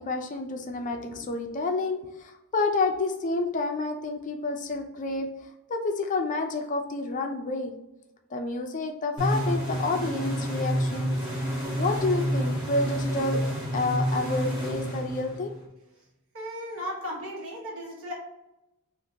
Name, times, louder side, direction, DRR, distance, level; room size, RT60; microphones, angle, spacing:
voice 1, 0.0-5.3 5.7-7.7 8.3-11.2 11.8-15.5, left 3 dB, 35° left, 4 dB, 0.4 m, -29 dB
sound 1, 9.2-15.7, equal, 20° right, 1.4 m, -29 dB
voice 2, 16.3-18.1, equal, 65° right, -3 dB, 1.2 m, -35 dB
3.7 x 2.5 x 2.7 m, 0.91 s
head